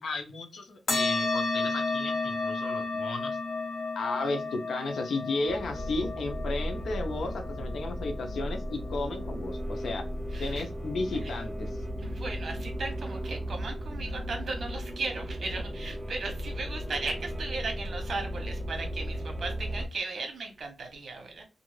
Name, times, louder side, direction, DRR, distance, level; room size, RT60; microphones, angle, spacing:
voice 1, 0.0-3.4 3.9-10.0 10.4-11.7, left 3 dB, 85° left, 0.8 m, -34 dB
sound 1, 0.9-9.8, left 3 dB, 65° left, 1.2 m, -33 dB
sound 2, 5.5-19.9, equal, 30° right, 0.6 m, -35 dB
voice 2, 10.3-10.6 12.0-21.4, right 3 dB, 70° right, 1.0 m, -36 dB
2.6 x 2.5 x 3.1 m
wide cardioid pair, 100°, 0 cm